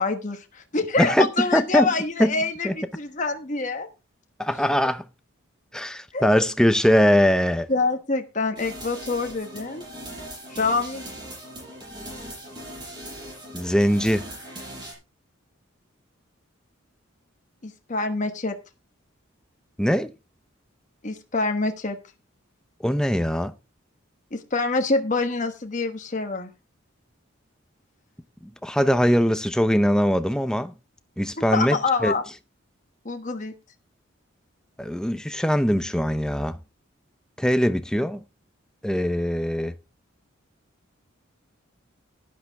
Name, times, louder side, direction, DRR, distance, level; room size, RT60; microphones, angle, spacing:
voice 1, 0.0-3.9 6.1-6.5 7.7-9.8 10.5-11.1 17.6-18.5 21.0-22.0 24.3-26.5 31.5-32.2 33.0-33.5, left 3 dB, 35° left, 1.2 m, -26 dB
voice 2, 1.0-1.9 2.2-2.3 2.6-2.7 4.4-5.0 5.7-7.7 13.5-14.3 19.8-20.1 22.8-23.5 28.6-30.7 31.2-32.1 34.8-36.6 37.4-38.2 38.8-39.7, equal, 5° left, 0.6 m, -21 dB
sound 1, 8.6-14.9, right 1 dB, 20° right, 6.8 m, -39 dB
11.5 x 10.5 x 3.5 m
head